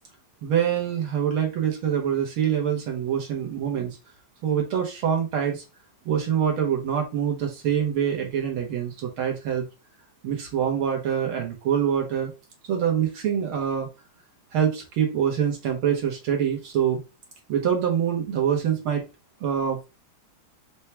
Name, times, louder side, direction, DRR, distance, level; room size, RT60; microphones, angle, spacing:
voice 1, 0.4-4.0 4.4-5.6 6.1-9.7 10.2-12.3 12.7-13.9 14.5-17.0 17.5-19.0 19.4-19.9, right 8 dB, 80° right, 1 dB, 1.9 m, -25 dB
4.6 x 2.3 x 4.3 m, 0.27 s
omnidirectional pair, 2.3 m